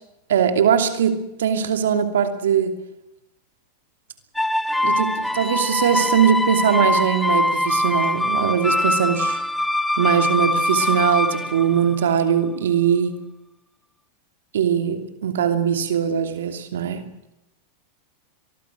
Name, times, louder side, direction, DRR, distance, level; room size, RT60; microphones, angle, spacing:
voice 1, 0.3-2.8 4.8-9.4 10.0-13.2 14.5-17.0, right 8 dB, 90° right, 7 dB, 2.8 m, -21 dB
sound 1, 4.4-12.3, left 1 dB, 5° left, 0.8 m, -23 dB
23.5 x 20.0 x 6.2 m, 0.87 s
supercardioid pair, 130°, 0 cm